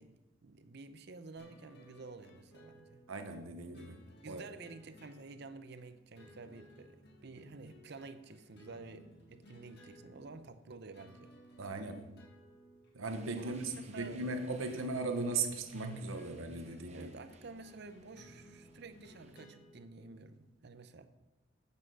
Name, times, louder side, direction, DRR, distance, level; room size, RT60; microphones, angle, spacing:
voice 1, 0.0-3.0 4.2-11.3 13.3-13.6 13.9-14.3 16.9-21.1, right 3 dB, 55° right, 11 dB, 0.7 m, -51 dB
sound 1, 1.4-20.6, equal, 55° left, 1.7 m, -60 dB
voice 2, 3.1-4.4 11.6-12.2 12.9-17.1, right 3 dB, 85° right, 7 dB, 1.0 m, -38 dB
sound 2, 13.0-19.4, right 3 dB, 35° right, 0.9 m, -61 dB
9.9 x 7.4 x 6.3 m, 1.1 s
head